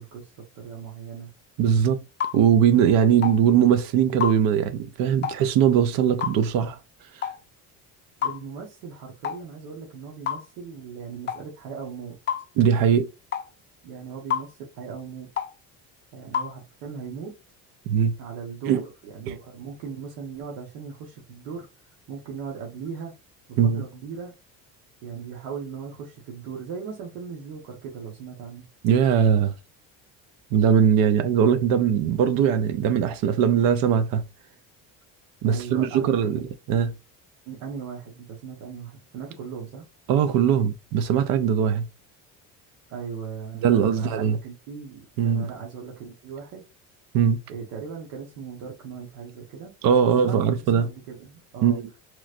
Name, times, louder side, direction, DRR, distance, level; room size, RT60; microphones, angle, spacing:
voice 1, 0.0-1.3 8.2-12.2 13.8-15.3 16.1-17.3 18.2-21.7 22.1-23.1 23.5-24.3 25.0-28.7 35.4-36.3 37.5-39.9 42.9-46.6 47.5-49.7 50.2-51.8, right 6 dB, 85° right, 1.1 m, -38 dB
voice 2, 1.6-2.0 2.3-6.8 12.6-13.1 17.9-18.1 18.7-18.8 19.3-19.4 23.6-23.8 28.8-29.5 30.5-34.2 35.4-36.4 36.7-36.9 40.1-41.8 43.6-44.4 45.2-45.5 47.1-47.4 49.8-50.9 51.6-51.8, right 8 dB, 70° right, 0.5 m, -20 dB
sound 1, 2.2-2.4 3.2-3.4 4.2-4.4 5.2-5.4 6.2-6.4 7.2-7.4 8.2-8.4 9.2-9.4 10.3-10.5 11.3-11.4 12.3-12.4 13.3-13.5 14.3-14.5 15.4-15.5 16.3-16.5, left 8 dB, 30° left, 0.4 m, -28 dB
3.1 x 3.0 x 2.5 m
cardioid pair, 120°, 36 cm